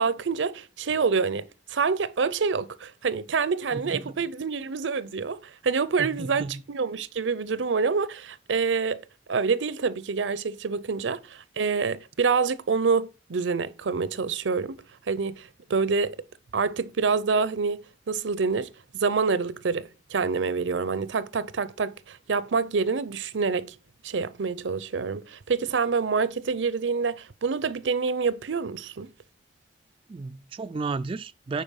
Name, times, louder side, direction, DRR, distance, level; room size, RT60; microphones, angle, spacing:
voice 1, 0.0-14.8 15.1-16.2 16.5-23.7 24.0-29.1, right 5 dB, 85° right, 0.6 m, -27 dB
voice 2, 3.7-4.1 6.0-6.6 30.1-31.6, right 4 dB, 30° right, 0.3 m, -33 dB
9.0 x 4.3 x 6.4 m
head